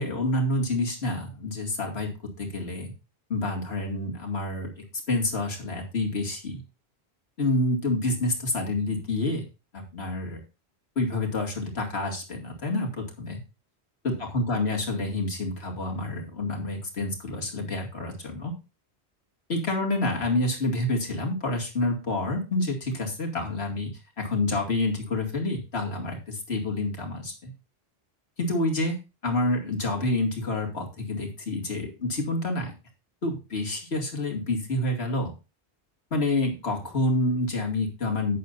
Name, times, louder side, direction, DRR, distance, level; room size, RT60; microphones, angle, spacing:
voice 1, 0.0-2.1 2.4-2.9 3.3-4.7 5.1-6.6 7.4-9.4 9.7-10.4 11.0-13.4 14.0-18.5 19.5-23.9 24.2-27.5 28.4-29.0 29.2-32.7 33.2-35.3 36.1-38.4, left 2 dB, 75° left, 1 dB, 2.6 m, -28 dB
11.0 x 8.8 x 2.6 m, 0.29 s
omnidirectional pair, 1.1 m